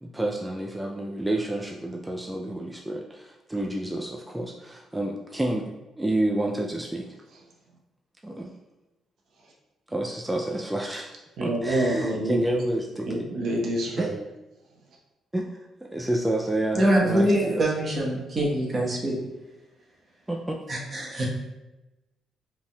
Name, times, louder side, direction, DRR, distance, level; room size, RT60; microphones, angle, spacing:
voice 1, 0.0-7.1 8.2-8.5 9.9-11.1 11.4-13.3 14.0-14.1 15.3-17.7 20.3-20.6, right 1 dB, 10° right, 0 dB, 0.4 m, -29 dB
voice 2, 11.4-12.6 13.1-14.1, right 1 dB, 70° right, -2 dB, 0.9 m, -27 dB
voice 3, 16.7-19.2 20.7-21.3, right 1 dB, 35° right, -3 dB, 1.1 m, -24 dB
5.1 x 3.4 x 2.3 m, 1.0 s
cardioid pair, 90°, 0 cm